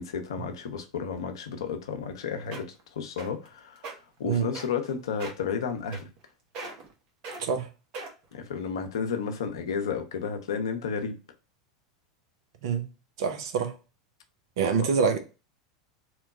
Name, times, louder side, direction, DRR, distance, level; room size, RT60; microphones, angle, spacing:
voice 1, 0.0-3.9 4.2-6.1 8.3-11.2 14.8-14.9, left 6 dB, 75° left, 0.6 m, -32 dB
sound 1, 2.1-2.2 2.5-2.8 3.2-3.5 3.8-3.9 4.5-4.9 5.2-5.5 5.9-6.3 6.5-6.9 7.2-7.4 7.9-8.3 8.9-9.0, right 3 dB, 45° right, 1.0 m, -39 dB
voice 2, 13.2-13.7 14.6-15.2, right 6 dB, 65° right, 0.6 m, -25 dB
3.0 x 2.2 x 3.7 m
hypercardioid pair, 85°, 3 cm